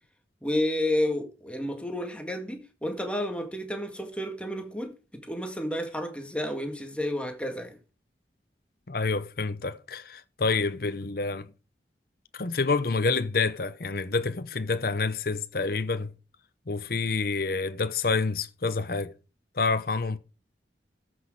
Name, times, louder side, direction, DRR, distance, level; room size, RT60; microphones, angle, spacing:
voice 1, 0.4-7.8, left 1 dB, 5° left, 1.8 m, -31 dB
voice 2, 8.9-11.5 12.3-16.1 16.7-19.1 19.6-20.2, left 4 dB, 55° left, 0.8 m, -28 dB
14.0 x 6.3 x 4.8 m
head